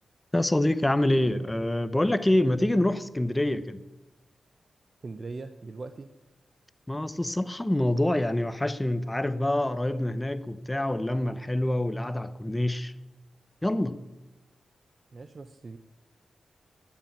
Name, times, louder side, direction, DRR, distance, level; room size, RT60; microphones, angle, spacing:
voice 1, 0.3-3.8 6.9-12.9 13.6-14.0, left 1 dB, 15° left, 0.9 m, -26 dB
voice 2, 5.0-6.1 15.1-15.8, right 3 dB, 50° right, 0.8 m, -40 dB
10.5 x 9.1 x 8.7 m
cardioid pair, 55°, 0 cm